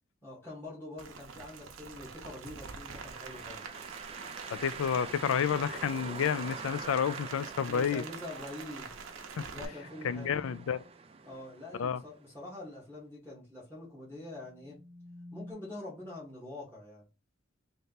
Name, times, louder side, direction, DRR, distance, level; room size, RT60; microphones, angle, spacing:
voice 1, 0.2-3.6 7.7-8.9 9.5-10.4 11.2-14.8 15.3-17.1, left 2 dB, 10° left, 1.5 m, -45 dB
Rain, 1.0-9.6, right 5 dB, 80° right, 0.6 m, -46 dB
sound 1, 2.6-12.4, right 5 dB, 30° right, 0.4 m, -46 dB
voice 2, 4.5-8.0 9.4-9.5 10.0-10.8 11.8-12.0, left 7 dB, 80° left, 0.4 m, -30 dB
sound 2, 8.9-11.0 14.0-15.5, left 1 dB, 10° right, 0.7 m, -53 dB
3.2 x 2.8 x 4.0 m
head